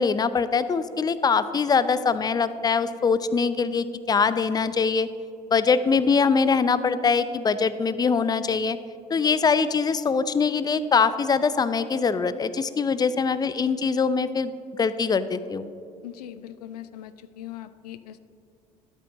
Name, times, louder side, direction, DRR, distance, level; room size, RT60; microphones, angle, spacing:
voice 1, 0.0-5.1 5.5-8.8 9.1-15.7, left 5 dB, 20° left, 14 dB, 0.5 m, -23 dB
voice 2, 16.0-18.2, left 12 dB, 75° left, 13 dB, 0.5 m, -40 dB
12.5 x 11.5 x 3.0 m, 2.5 s
figure-of-eight pair, 60°, 20 cm